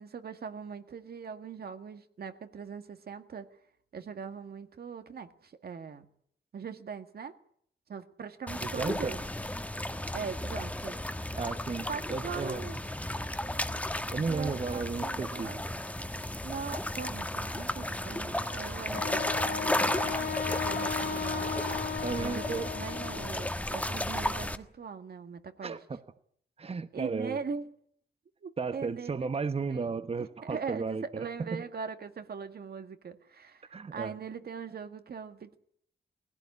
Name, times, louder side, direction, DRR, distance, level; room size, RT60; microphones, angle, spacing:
voice 1, 0.0-3.5 3.9-6.1 6.5-7.3 7.9-9.2 10.1-11.0 11.9-12.8 14.3-15.7 16.4-21.5 22.2-25.8 26.9-27.7 28.4-29.3 29.7-35.6, right 6 dB, 65° right, 8 dB, 1.9 m, -41 dB
sound 1, 8.5-24.6, left 1 dB, 10° left, 1.3 m, -34 dB
voice 2, 8.6-9.1 11.3-12.6 14.1-15.5 18.8-19.0 22.0-22.7 25.6-26.0 26.6-27.4 28.6-31.6 33.7-34.1, right 4 dB, 35° right, 12 dB, 1.1 m, -34 dB
Wind instrument woodwind instrument, 18.9-23.6, left 7 dB, 60° left, 0.9 m, -36 dB
19.5 x 16.5 x 9.5 m, 0.66 s
wide cardioid pair, 100°, 17 cm